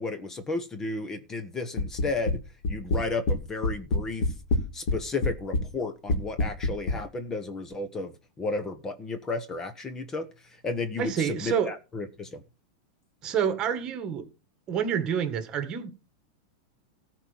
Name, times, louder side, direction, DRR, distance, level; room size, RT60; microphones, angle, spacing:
voice 1, 0.0-2.4 2.7-4.3 4.7-12.4, left 3 dB, 20° left, 1.2 m, -33 dB
sound 1, 1.8-2.4 2.6-3.4 3.6-5.0 5.2-5.7 6.1-7.0, left 2 dB, 65° left, 3.1 m, -25 dB
voice 2, 11.0-11.7 13.2-14.3 14.7-15.9, right 8 dB, 30° right, 1.9 m, -28 dB
14.0 x 4.6 x 7.3 m
supercardioid pair, 135°, 3 cm